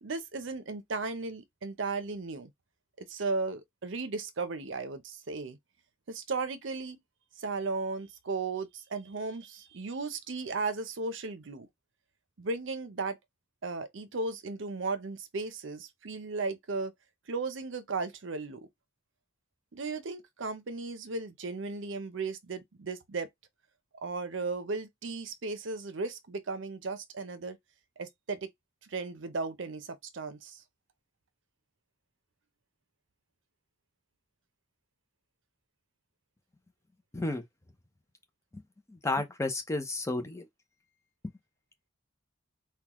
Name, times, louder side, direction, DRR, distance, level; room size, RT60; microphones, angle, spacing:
voice 1, 0.0-2.5 3.0-5.6 6.1-7.0 7.4-11.7 12.4-13.2 13.6-16.9 17.3-18.7 19.7-23.3 24.0-27.6 28.0-28.5 28.8-30.6, right 3 dB, 70° right, 0.7 m, -35 dB
voice 2, 37.1-37.4 38.5-38.6 38.9-40.5, left 2 dB, 15° left, 0.7 m, -32 dB
3.8 x 2.3 x 3.0 m
head